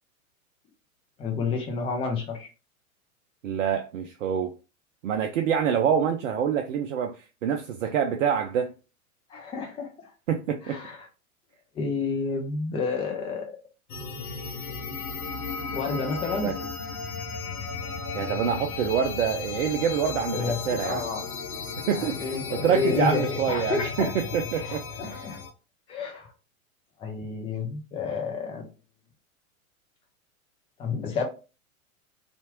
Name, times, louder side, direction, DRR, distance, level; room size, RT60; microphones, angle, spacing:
voice 1, 1.2-2.5 9.3-10.1 10.6-11.0 11.7-13.5 15.7-16.5 20.2-21.2 21.9-24.1 24.6-25.4 25.9-26.3 27.0-28.7 30.8-31.2, left 4 dB, 15° left, 0.5 m, -30 dB
voice 2, 3.4-4.5 5.0-8.7 10.3-10.8 16.3-16.6 18.1-21.0 21.9-25.3, right 8 dB, 60° right, 0.5 m, -26 dB
sound 1, 13.9-25.5, left 5 dB, 80° left, 0.7 m, -35 dB
2.8 x 2.4 x 2.8 m
figure-of-eight pair, 100°, 43 cm